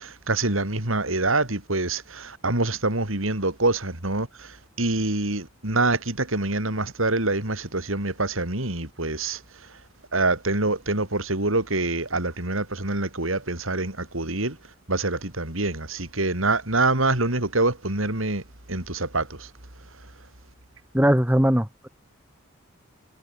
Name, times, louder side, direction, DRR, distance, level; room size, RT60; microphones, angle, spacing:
voice 1, 0.3-2.0 2.4-4.3 4.8-9.4 10.1-14.5 14.9-18.4 18.7-19.2, right 2 dB, 85° right, 5.3 m, -25 dB
voice 2, 20.9-21.9, equal, 10° right, 1.9 m, -20 dB
head